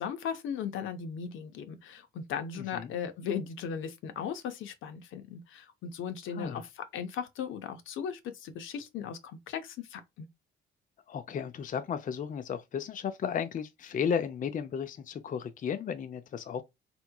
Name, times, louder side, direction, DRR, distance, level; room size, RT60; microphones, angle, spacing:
voice 1, 0.0-10.3, left 7 dB, 80° left, 0.7 m, -37 dB
voice 2, 2.6-2.9 6.3-6.6 11.1-16.6, left 7 dB, 40° left, 0.5 m, -34 dB
3.4 x 3.0 x 2.2 m
cardioid pair, 90°, 20 cm